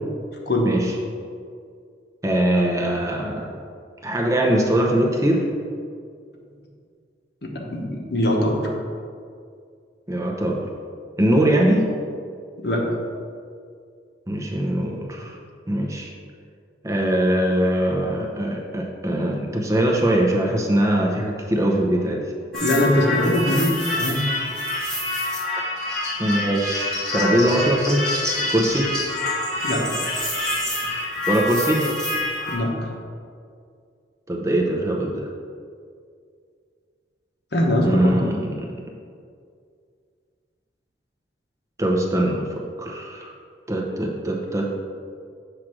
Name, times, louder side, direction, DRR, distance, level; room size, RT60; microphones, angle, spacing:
voice 1, 2.2-3.6 4.0-5.5 10.1-10.7 11.2-11.9 14.3-15.4 15.7-16.1 16.8-22.2 26.2-28.0 28.5-28.9 31.3-31.9 34.3-35.3 37.8-38.6 41.8-42.5 42.8-43.3 43.7-44.7, right 1 dB, 15° right, -1 dB, 0.7 m, -21 dB
voice 2, 7.4-8.7 12.6-12.9 22.5-24.2 29.6-29.9 32.5-32.9 37.5-38.1, left 1 dB, 60° left, -1 dB, 1.1 m, -22 dB
sound 1, 22.5-32.6, left 2 dB, 5° left, 1.6 m, -26 dB
7.4 x 3.2 x 6.1 m, 2.2 s
head